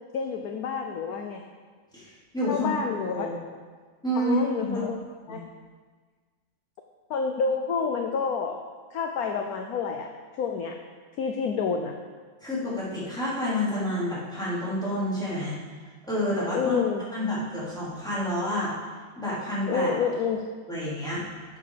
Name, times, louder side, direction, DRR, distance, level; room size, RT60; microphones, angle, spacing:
voice 1, 0.1-1.4 2.5-3.3 4.2-5.0 5.3-5.4 7.1-8.6 8.9-10.8 11.2-12.0 16.5-17.0 19.7-20.4, left 5 dB, 65° left, 4 dB, 1.0 m, -28 dB
voice 2, 1.9-2.7 3.1-3.3 4.0-4.9 5.3-5.4 12.4-15.6 16.1-16.8 17.1-18.7 19.2-19.9 20.7-21.2, equal, ahead, -9 dB, 3.6 m, -29 dB
11.5 x 7.2 x 5.1 m, 1.5 s
omnidirectional pair, 2.0 m